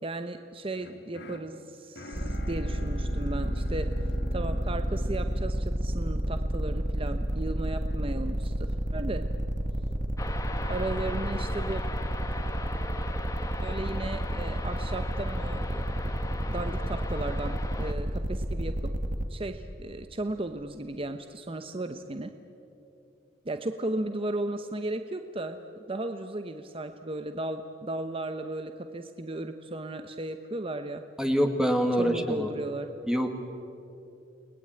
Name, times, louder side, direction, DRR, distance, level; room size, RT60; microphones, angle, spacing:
voice 1, 0.0-3.9 4.3-9.2 10.6-11.8 13.6-18.9 19.3-22.3 23.4-25.6 25.9-31.0 32.0-32.9, right 2 dB, 30° right, 8 dB, 0.9 m, -35 dB
sound 1, 0.8-6.9, left 1 dB, 65° left, 2.1 m, -46 dB
sound 2, 2.1-19.3, equal, 45° right, 1.8 m, -30 dB
sound 3, 10.2-17.9, left 2 dB, 20° left, 1.8 m, -39 dB
voice 2, 31.2-32.5 33.1-33.3, equal, 5° right, 4 dB, 1.8 m, -25 dB
30.0 x 20.5 x 8.9 m, 2.9 s
head